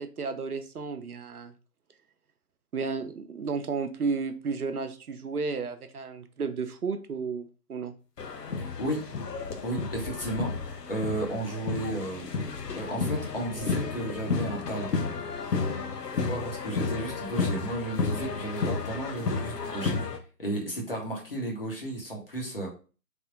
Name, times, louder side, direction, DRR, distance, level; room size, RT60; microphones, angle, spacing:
voice 1, 0.0-1.5 2.7-8.0, right 4 dB, 65° right, 8 dB, 0.5 m, -33 dB
sound 1, 8.2-20.2, left 4 dB, 75° left, 0.7 m, -32 dB
voice 2, 8.6-9.0 9.6-12.3 12.8-14.9 16.3-20.0 20.4-22.7, right 1 dB, 35° left, -1 dB, 0.8 m, -33 dB
3.4 x 2.1 x 3.8 m, 0.37 s
figure-of-eight pair, 155°, 49 cm